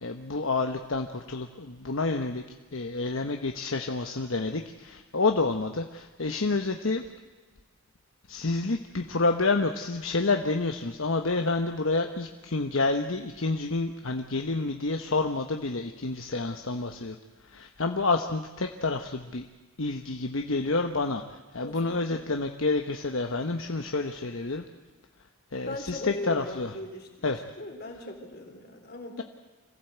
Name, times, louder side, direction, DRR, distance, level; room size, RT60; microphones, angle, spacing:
voice 1, 0.0-2.4 2.7-7.0 8.3-17.2 17.5-19.5 19.8-24.6 25.5-26.7 27.2-27.4, left 3 dB, 70° left, 5 dB, 1.1 m, -29 dB
voice 2, 25.7-27.3 27.6-29.2, left 1 dB, 45° left, 3 dB, 3.6 m, -39 dB
26.0 x 15.5 x 8.0 m, 1.3 s
head